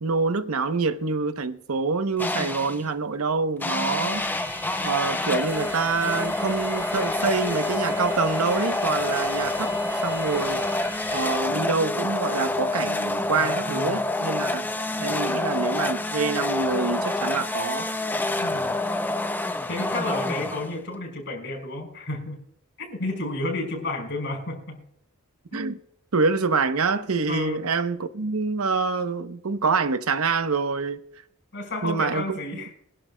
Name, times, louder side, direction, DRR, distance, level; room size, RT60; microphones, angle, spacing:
voice 1, 0.0-4.3 4.8-9.7 10.0-10.7 11.1-14.7 15.0-17.9 25.5-25.8 26.1-31.0 31.8-32.6, right 4 dB, 85° right, 0.8 m, -26 dB
sound 1, 2.2-2.9 3.6-21.0, left 2 dB, 10° left, 0.5 m, -27 dB
sound 2, 4.1-11.4, right 1 dB, 10° right, 3.2 m, -40 dB
voice 2, 13.4-14.0 18.4-18.8 19.7-22.4 22.8-24.8 25.5-25.6 27.3-27.6 31.5-32.7, left 2 dB, 55° left, 5.2 m, -31 dB
24.0 x 11.0 x 2.2 m
head